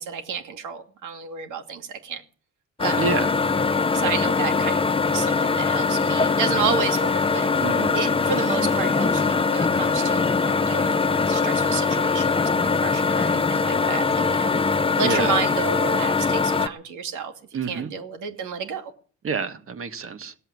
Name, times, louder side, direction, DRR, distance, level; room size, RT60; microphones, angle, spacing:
voice 1, 0.0-2.2 2.8-3.0 3.9-7.5 7.9-18.9, right 6 dB, 85° right, 2.6 m, -31 dB
sound 1, 2.8-16.7, left 4 dB, 20° left, 0.8 m, -22 dB
voice 2, 3.0-3.3 7.6-8.0 15.0-15.3 17.5-17.9 19.2-20.3, right 5 dB, 45° right, 1.8 m, -28 dB
17.5 x 7.9 x 9.6 m
cardioid pair, 90°, 30 cm